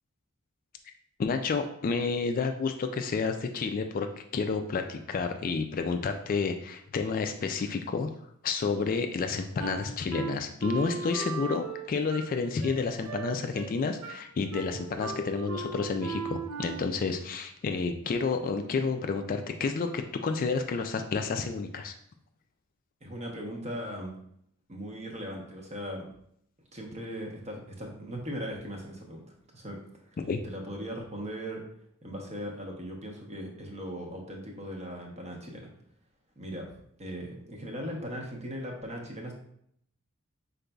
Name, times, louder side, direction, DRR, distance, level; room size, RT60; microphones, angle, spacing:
voice 1, 1.2-8.1 8.4-21.9 30.2-30.4, left 4 dB, 40° left, 6 dB, 0.3 m, -30 dB
Wind instrument woodwind instrument, 9.6-17.0, right 5 dB, 80° right, 0.6 m, -38 dB
voice 2, 23.0-24.1 24.7-26.0 26.7-29.2 29.5-29.8 30.4-31.6 32.0-35.7 36.4-39.3, equal, 30° right, 0 dB, 0.9 m, -38 dB
5.1 x 3.9 x 2.3 m, 0.70 s
head